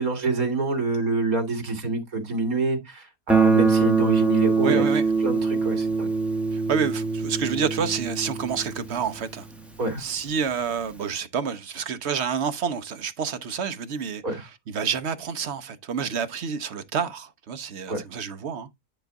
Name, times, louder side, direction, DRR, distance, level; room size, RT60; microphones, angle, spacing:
voice 1, 0.0-4.9 5.2-6.1 9.8-10.0 14.2-14.5 17.9-18.0, right 3 dB, 75° right, 2.4 m, -26 dB
Guitar, 3.3-10.0, right 4 dB, ahead, 0.8 m, -24 dB
voice 2, 4.6-5.0 6.5-9.5 10.0-18.7, right 6 dB, 55° right, 1.0 m, -29 dB
10.0 x 3.9 x 3.5 m
omnidirectional pair, 1.5 m